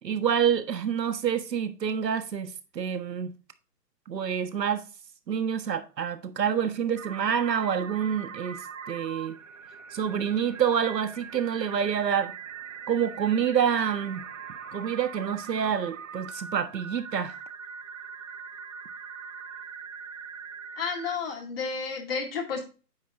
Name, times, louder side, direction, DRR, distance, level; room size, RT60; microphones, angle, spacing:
voice 1, 0.0-3.3 4.1-4.8 5.3-9.4 9.9-12.3 12.9-14.2 14.7-17.4, right 8 dB, 75° right, 1.4 m, -27 dB
sound 1, 7.0-21.2, right 6 dB, 50° right, 0.7 m, -42 dB
voice 2, 20.8-22.6, left 5 dB, 35° left, 2.4 m, -31 dB
9.3 x 6.5 x 2.5 m
hypercardioid pair, 170°, 50 cm